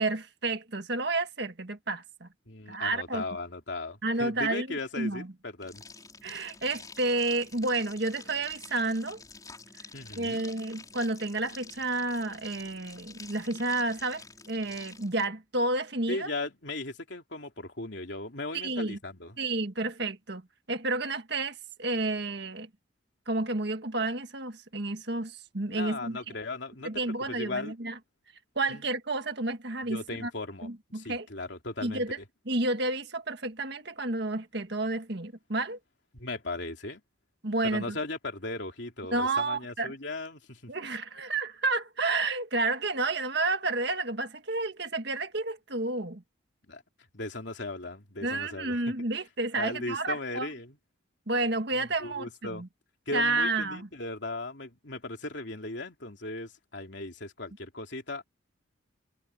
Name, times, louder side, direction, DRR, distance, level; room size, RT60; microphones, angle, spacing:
voice 1, 0.0-2.3 2.7-3.2 4.0-5.3 6.2-9.2 10.2-16.3 18.5-19.0 19.4-20.4 20.7-22.7 23.3-26.2 26.8-28.0 28.6-30.3 30.6-31.3 31.8-32.2 32.5-35.8 37.4-38.0 39.1-39.9 40.7-46.2 48.2-50.5 51.3-52.7 53.1-53.9, right 2 dB, 55° right, 1.8 m, -30 dB
voice 2, 2.5-5.8 9.9-10.4 16.1-19.4 25.7-27.7 28.7-28.8 29.9-32.0 36.1-37.0 37.6-40.7 46.7-46.8 47.1-48.9 49.6-50.8 51.8-52.6 53.1-58.2, left 2 dB, 60° left, 3.2 m, -37 dB
sound 1, 5.6-15.3, left 4 dB, 20° left, 4.7 m, -49 dB
head